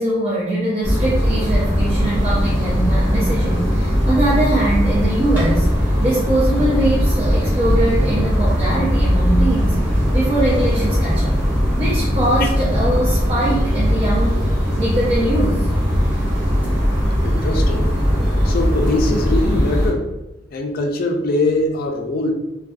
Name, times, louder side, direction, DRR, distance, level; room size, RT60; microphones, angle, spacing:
voice 1, 0.0-9.8 10.1-11.3 11.8-14.4 14.8-15.7, right 1 dB, 35° right, -7 dB, 0.5 m, -22 dB
sound 1, 0.8-19.9, equal, 10° right, 0.8 m, -19 dB
voice 2, 17.2-17.9 18.4-20.1 20.5-22.3, left 2 dB, 50° left, 3 dB, 0.4 m, -22 dB
2.6 x 2.2 x 2.2 m, 0.94 s
head